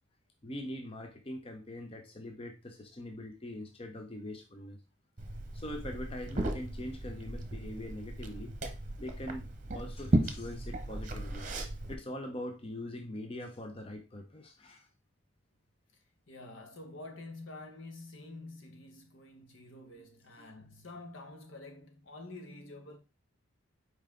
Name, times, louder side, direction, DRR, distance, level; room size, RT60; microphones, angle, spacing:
voice 1, 0.4-4.8 5.5-8.5 9.0-11.5 11.9-14.9 20.4-20.5, left 1 dB, 30° left, 0.7 m, -42 dB
Liquid, 5.2-11.9, right 1 dB, 40° right, 0.9 m, -35 dB
voice 2, 16.3-23.0, left 2 dB, 70° left, 1.3 m, -48 dB
5.5 x 4.7 x 3.7 m
head